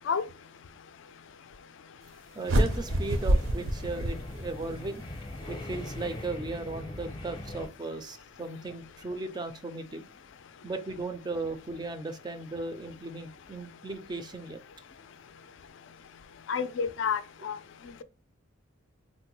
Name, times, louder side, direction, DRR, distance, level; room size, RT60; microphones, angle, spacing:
voice 1, 2.4-5.0 5.5-10.1 10.6-14.6, right 3 dB, 20° right, 0.3 m, -36 dB
sound 1, 2.5-4.8, right 1 dB, 75° right, 0.6 m, -27 dB
sound 2, 2.6-7.7, left 1 dB, 20° left, 0.6 m, -41 dB
voice 2, 16.5-17.6, left 6 dB, 65° left, 0.4 m, -29 dB
3.5 x 2.1 x 2.9 m
head